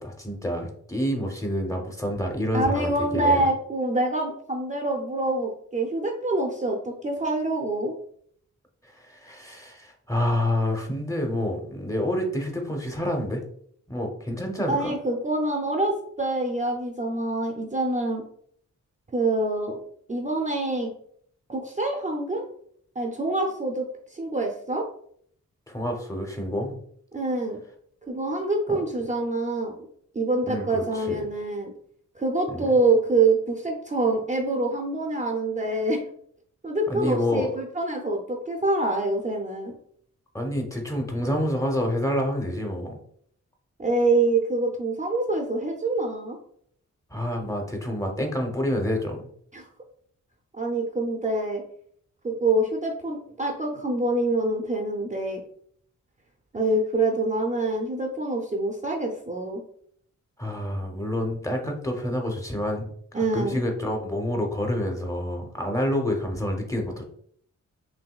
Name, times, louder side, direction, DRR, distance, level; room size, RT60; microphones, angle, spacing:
voice 1, 0.0-3.4 8.9-13.4 13.9-14.9 25.7-26.8 28.7-28.8 30.5-31.2 32.5-32.6 36.9-37.5 40.3-43.0 47.1-49.2 60.4-62.9 63.1-67.0, left 1 dB, 10° left, 2 dB, 0.7 m, -28 dB
voice 2, 2.5-7.9 14.7-18.2 19.1-19.8 20.1-20.9 21.5-22.4 23.0-23.9 24.1-24.9 27.1-27.6 28.1-29.7 30.1-31.7 32.2-36.0 36.6-39.7 43.8-46.4 49.5-49.6 50.5-51.6 52.2-55.4 56.5-59.6 63.1-63.6, right 2 dB, 25° right, 1 dB, 0.5 m, -25 dB
5.9 x 2.6 x 2.3 m, 0.63 s
wide cardioid pair, 145°, 30 cm